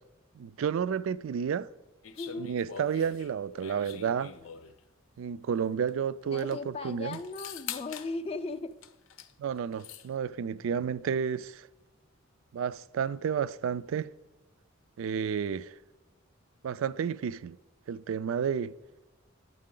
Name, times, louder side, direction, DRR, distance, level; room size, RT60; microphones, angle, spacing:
voice 1, 0.3-1.7 2.4-4.3 5.2-7.2 9.4-11.7 12.5-14.1 15.0-15.7 16.6-17.6 17.9-18.7, right 7 dB, 70° right, 0.3 m, -31 dB
sound 1, 2.0-4.8 5.9-6.0 6.2-6.6 7.1-8.1 8.8-9.3 9.6-10.1, left 8 dB, 75° left, 0.6 m, -44 dB
voice 2, 2.1-2.5 6.2-8.8, left 3 dB, 30° left, 0.4 m, -37 dB
9.7 x 7.4 x 3.8 m
head